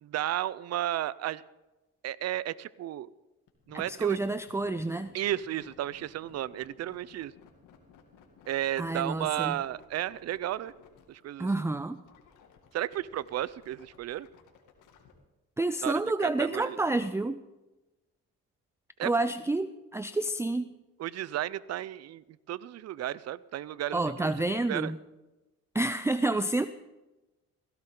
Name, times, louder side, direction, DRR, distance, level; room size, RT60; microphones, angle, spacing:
voice 1, 0.0-1.4 2.0-3.1 3.7-4.2 5.1-7.3 8.5-10.7 11.1-11.5 12.7-14.3 15.8-15.9 16.4-16.8 19.0-19.1 21.0-24.9, right 12 dB, 60° right, 19 dB, 0.6 m, -33 dB
sound 1, 3.5-15.1, left 7 dB, 90° left, 2.4 m, -58 dB
voice 2, 3.7-5.1 8.8-9.6 11.4-12.0 15.6-17.4 19.0-20.7 23.9-25.0 25.7-26.7, right 2 dB, 10° right, 12 dB, 0.5 m, -29 dB
16.5 x 16.5 x 3.9 m, 1.0 s
cardioid pair, 90°, 30 cm